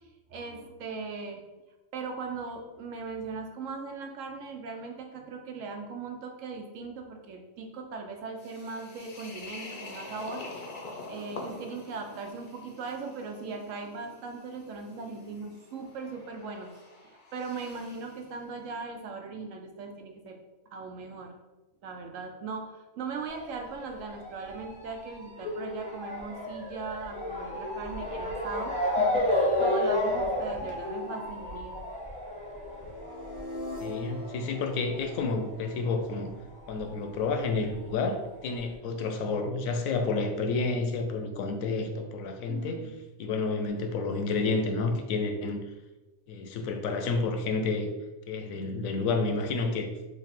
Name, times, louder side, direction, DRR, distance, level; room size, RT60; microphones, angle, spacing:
voice 1, 0.3-1.4 1.9-10.4 11.1-16.7 17.0-20.4 20.7-21.3 21.8-31.8 42.5-42.9, right 4 dB, 75° right, 3 dB, 1.0 m, -39 dB
sound 1, 8.4-18.2, left 2 dB, 50° left, 0.7 m, -46 dB
Motor vehicle (road) / Siren, 23.3-36.3 36.5-37.7 38.4-38.5 38.7-38.8, left 1 dB, 10° left, 0.6 m, -32 dB
sound 2, 32.6-36.6, left 1 dB, 15° right, 0.9 m, -42 dB
voice 2, 33.8-36.3 36.7-42.8 43.2-45.6 46.3-47.9 48.3-49.9, left 3 dB, 85° left, 5 dB, 1.0 m, -30 dB
3.3 x 2.6 x 4.0 m, 1.1 s
omnidirectional pair, 1.4 m